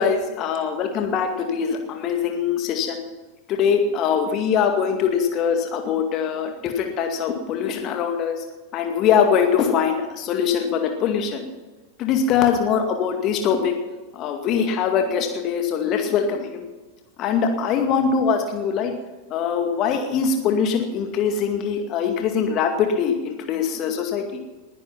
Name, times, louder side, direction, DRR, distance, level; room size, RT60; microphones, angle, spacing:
voice 1, 0.0-3.0 3.5-8.4 8.7-11.5 12.0-13.7 14.1-16.7 17.2-18.9 19.3-24.4, left 7 dB, 35° left, 4 dB, 2.1 m, -22 dB
20.0 x 11.5 x 5.8 m, 1.2 s
figure-of-eight pair, 90°, 0 cm